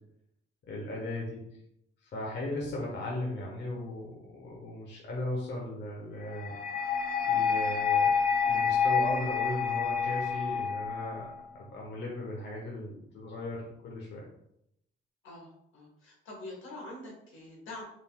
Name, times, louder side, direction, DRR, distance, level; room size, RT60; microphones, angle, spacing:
voice 1, 0.7-1.4 2.0-6.5 7.2-8.1 8.5-11.3 11.5-14.3, left 1 dB, 60° left, -3 dB, 1.0 m, -37 dB
sound 1, 6.3-11.3, left 6 dB, 45° left, 0.4 m, -28 dB
voice 2, 15.2-17.8, left 2 dB, 85° left, -1 dB, 1.4 m, -45 dB
3.9 x 3.5 x 2.3 m, 0.77 s
cardioid pair, 90°, 20 cm